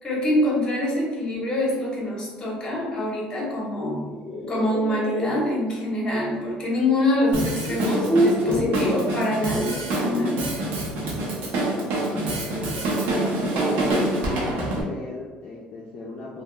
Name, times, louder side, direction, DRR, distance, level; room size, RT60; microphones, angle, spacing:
voice 1, 0.0-4.1 4.5-10.5, left 1 dB, 25° left, -4 dB, 0.9 m, -25 dB
sound 1, 4.0-5.3 6.8-6.9 7.5-8.9, equal, 5° right, 0.8 m, -25 dB
Drum kit, 7.3-14.8, right 1 dB, 70° right, 0.6 m, -26 dB
voice 2, 11.3-12.9 13.2-13.9 14.2-16.4, left 2 dB, 40° left, -5 dB, 0.4 m, -37 dB
2.8 x 2.1 x 2.2 m, 1.3 s
cardioid pair, 130°, 3 cm